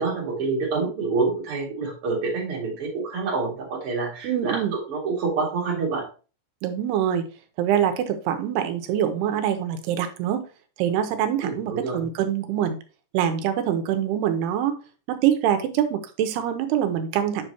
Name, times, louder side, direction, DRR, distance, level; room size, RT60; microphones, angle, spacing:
voice 1, 0.0-6.0 11.4-12.0, right 4 dB, 40° right, -3 dB, 2.7 m, -27 dB
voice 2, 4.2-4.7 6.6-7.3 7.6-10.4 10.8-12.8 13.1-14.8 15.1-17.5, right 10 dB, 85° right, 7 dB, 2.7 m, -24 dB
7.5 x 5.7 x 2.9 m, 0.35 s
omnidirectional pair, 4.8 m